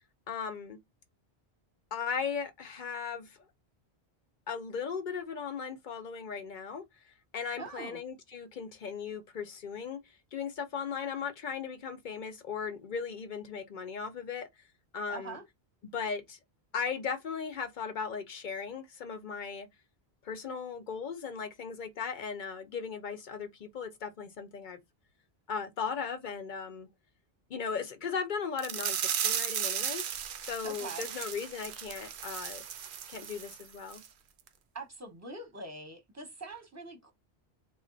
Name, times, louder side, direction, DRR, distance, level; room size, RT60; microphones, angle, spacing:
voice 1, 0.3-0.8 1.9-3.4 4.5-14.5 14.9-15.4 15.9-16.4 16.7-19.7 20.2-24.8 25.5-26.9 27.5-30.0 30.4-32.6 33.1-34.0, left 6 dB, 55° left, 0.6 m, -37 dB
voice 2, 7.6-8.0 15.1-15.4 30.6-31.1 34.7-37.1, right 3 dB, 15° right, 0.9 m, -43 dB
sound 1, 28.6-33.6 33.9-34.1 34.5-34.6, right 8 dB, 90° right, 0.9 m, -35 dB
3.7 x 2.1 x 3.8 m
omnidirectional pair, 1.1 m